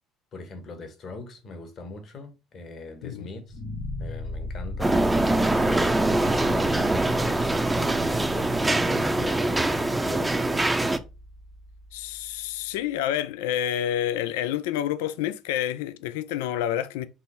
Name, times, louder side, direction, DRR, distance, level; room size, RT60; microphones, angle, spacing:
voice 1, 0.3-3.6 4.0-5.0 5.3-11.0, left 3 dB, 50° left, 1.3 m, -41 dB
sound 1, 3.5-12.5, left 2 dB, 70° left, 2.0 m, -37 dB
sound 2, 4.8-11.0, right 2 dB, 10° right, 0.5 m, -23 dB
voice 2, 11.9-17.1, left 11 dB, 90° left, 0.3 m, -28 dB
5.4 x 2.1 x 4.2 m
supercardioid pair, 85°, 0 cm